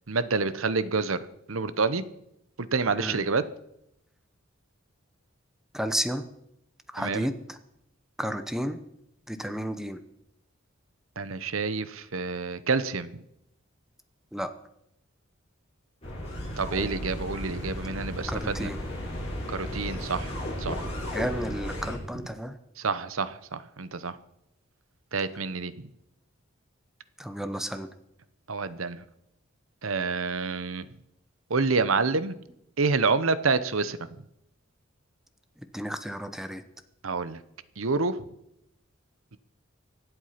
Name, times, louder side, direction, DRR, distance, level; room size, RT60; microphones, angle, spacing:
voice 1, 0.1-1.2 1.5-2.0 2.6-3.4 7.0-7.3 11.2-13.2 16.6-18.7 19.5-20.3 20.6-20.8 22.8-24.1 25.1-25.9 28.5-29.0 29.8-30.9 31.5-32.3 32.8-34.0 37.0-37.4 37.8-38.2, right 4 dB, 85° right, 15 dB, 0.9 m, -28 dB
voice 2, 5.7-6.3 6.9-7.6 8.2-8.8 9.3-10.0 14.3-14.5 18.3-18.8 21.1-22.6 27.2-27.9 35.7-36.6, equal, ahead, 10 dB, 0.9 m, -32 dB
sound 1, 16.0-22.0, equal, 30° left, 7.6 m, -34 dB
24.0 x 8.1 x 5.8 m, 0.80 s
head